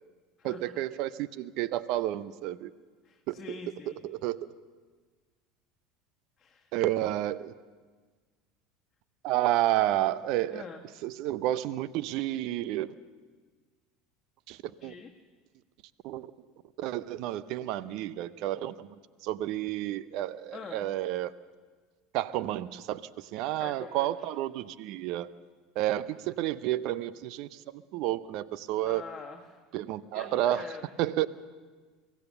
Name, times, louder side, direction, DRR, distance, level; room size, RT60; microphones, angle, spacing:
voice 1, 0.4-2.7 3.3-3.4 4.0-4.4 6.7-7.5 9.2-10.6 11.0-12.9 14.5-14.9 16.0-16.3 16.8-21.3 22.1-25.3 25.8-29.0 29.7-30.6 31.0-31.3, right 14 dB, 55° right, 17 dB, 0.7 m, -31 dB
voice 2, 3.0-4.1 6.4-6.7 10.5-10.8 14.8-15.1 20.5-20.9 23.6-24.3 28.8-29.6 30.1-30.8, left 5 dB, 25° left, 0 dB, 1.7 m, -45 dB
23.5 x 16.5 x 6.9 m, 1.4 s
figure-of-eight pair, 70°, 0 cm